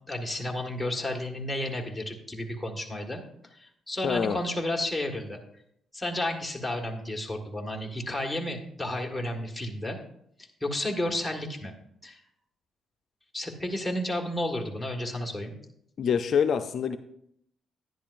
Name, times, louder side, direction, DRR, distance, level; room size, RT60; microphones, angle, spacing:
voice 1, 0.1-3.2 3.5-5.4 5.9-10.0 10.6-11.7 12.0-12.2 13.3-15.5, left 1 dB, 5° left, 1 dB, 1.7 m, -32 dB
voice 2, 4.0-4.4 16.0-17.0, left 7 dB, 60° left, 8 dB, 0.4 m, -25 dB
10.5 x 10.5 x 2.5 m, 0.72 s
cardioid pair, 90°, 0 cm